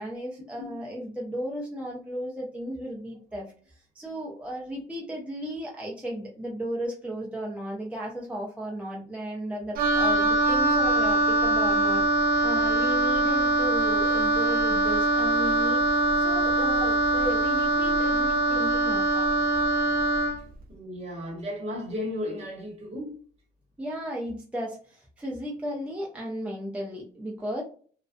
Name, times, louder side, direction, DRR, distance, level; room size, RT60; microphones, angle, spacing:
voice 1, 0.0-3.5 3.9-15.8 16.2-19.3 23.8-27.6, equal, 5° right, 0.5 m, -35 dB
Wind instrument woodwind instrument, 9.8-20.4, right 2 dB, 60° right, 0.4 m, -23 dB
voice 2, 20.7-23.2, left 1 dB, 40° right, 1.0 m, -34 dB
2.3 x 2.1 x 2.4 m
cardioid pair, 110°, 17 cm